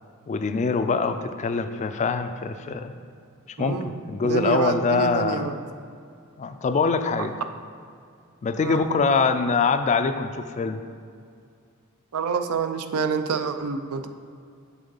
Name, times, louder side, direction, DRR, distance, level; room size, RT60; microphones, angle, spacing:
voice 1, 0.3-2.9 3.6-5.5 6.4-7.3 8.4-10.8, left 4 dB, 30° left, 9 dB, 0.3 m, -24 dB
voice 2, 3.6-5.6 7.2-7.3 8.6-8.8 12.1-14.1, right 5 dB, 75° right, 9 dB, 0.4 m, -27 dB
7.2 x 3.7 x 5.5 m, 2.3 s
head